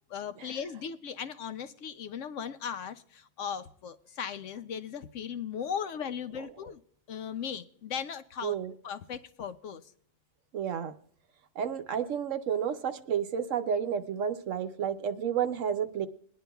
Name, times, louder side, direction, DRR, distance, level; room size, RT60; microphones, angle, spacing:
voice 1, 0.1-6.8 7.1-8.6 8.8-9.9, left 7 dB, 65° left, 0.9 m, -37 dB
voice 2, 8.4-8.7 10.5-10.9 11.6-16.1, right 8 dB, 65° right, 1.0 m, -31 dB
21.5 x 10.5 x 2.3 m
omnidirectional pair, 1.5 m